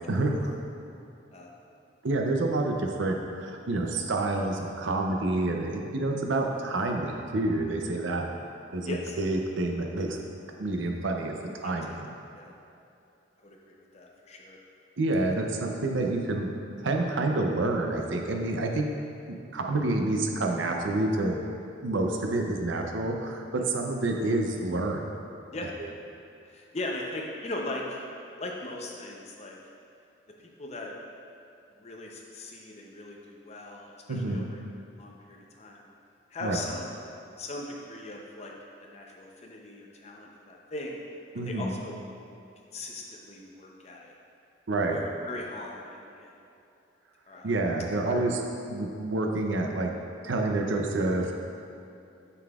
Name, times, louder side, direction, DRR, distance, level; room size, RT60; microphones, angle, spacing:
voice 1, 0.1-0.5 2.0-8.2 8.7-10.2 10.6-11.4 11.6-12.1 15.0-16.5 16.8-18.9 19.5-21.4 21.8-25.0 34.1-34.5 36.4-36.6 41.3-41.7 44.7-45.0 47.4-48.4 48.7-49.9 50.2-51.3, right 2 dB, 80° right, 2 dB, 0.6 m, -28 dB
voice 2, 8.8-9.2 11.6-12.0 12.3-12.5 13.4-14.6 15.2-15.3 23.7-23.8 25.5-25.7 26.5-28.0 28.4-29.6 30.6-30.9 31.8-34.6 35.0-35.9 36.3-36.9 37.4-38.5 38.8-41.0 41.4-42.0 42.7-44.1 44.9-46.3 47.3-47.5 48.0-48.3, left 2 dB, 35° left, -1 dB, 0.6 m, -39 dB
6.9 x 6.8 x 2.4 m, 2.7 s
head